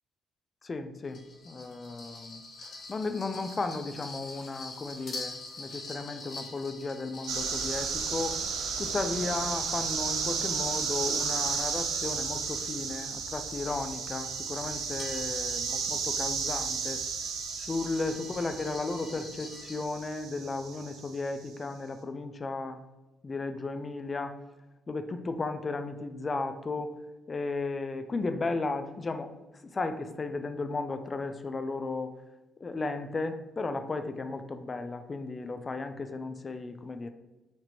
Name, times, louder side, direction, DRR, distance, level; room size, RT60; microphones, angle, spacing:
voice 1, 0.6-1.2 1.5-2.4 2.9-8.4 8.8-17.0 17.7-22.8 23.2-24.3 24.9-26.9 27.3-29.3 29.7-32.1 32.6-37.1, left 3 dB, 30° left, 9 dB, 0.4 m, -34 dB
sound 1, 1.0-9.6 10.1-19.9, left 3 dB, 55° left, 1.4 m, -47 dB
sound 2, 7.3-21.3, right 5 dB, 80° right, 0.6 m, -33 dB
4.4 x 2.6 x 4.2 m, 1.1 s
cardioid pair, 90°, 0 cm